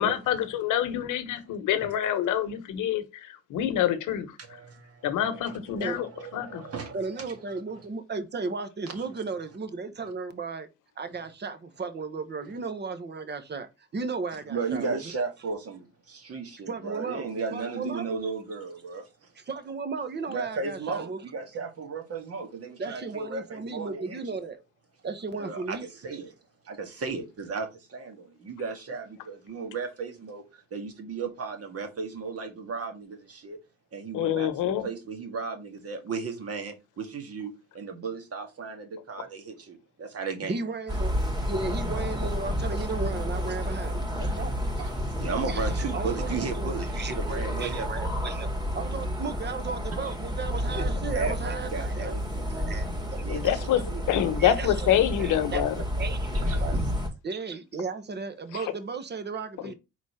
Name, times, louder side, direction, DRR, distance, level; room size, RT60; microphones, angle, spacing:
voice 1, 0.0-4.3 5.0-6.1 6.3-6.6 34.1-34.9 53.3-53.8 54.1-55.7 58.5-58.6 59.6-59.7, left 11 dB, 85° left, 1.1 m, -26 dB
voice 2, 4.5-5.6 5.9-7.3 8.9-9.0 14.5-19.1 20.3-24.2 25.4-26.3 26.7-33.6 33.9-40.6 42.8-42.9 44.8-47.9 50.0-50.2 50.7-51.3 51.7-52.8 53.2-53.6 53.8-54.3 56.4-56.6, right 4 dB, 50° right, 2.0 m, -35 dB
voice 3, 6.9-10.7 11.0-15.0 16.7-18.1 19.4-21.2 22.8-24.6 25.0-25.9 40.4-41.2 41.5-44.6 45.5-48.5 48.7-52.1 52.5-53.2 53.5-53.8 54.4-54.9 55.2-56.8 57.2-59.7, right 4 dB, 35° right, 1.1 m, -35 dB
sound 1, 40.9-57.1, equal, 15° right, 2.3 m, -30 dB
4.9 x 4.1 x 5.6 m
cardioid pair, 90°, 30 cm